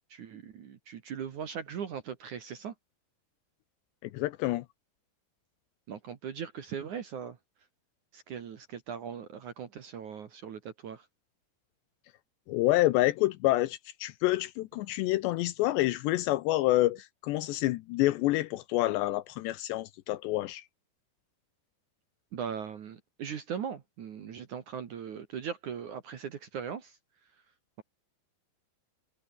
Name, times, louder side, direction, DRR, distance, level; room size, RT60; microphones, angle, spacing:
voice 1, 0.1-2.7 5.9-7.4 8.1-11.1 22.3-27.0, right 7 dB, 55° right, 2.4 m, -39 dB
voice 2, 4.0-4.7 12.5-20.6, left 17 dB, 80° left, 2.7 m, -28 dB
omnidirectional pair, 5.5 m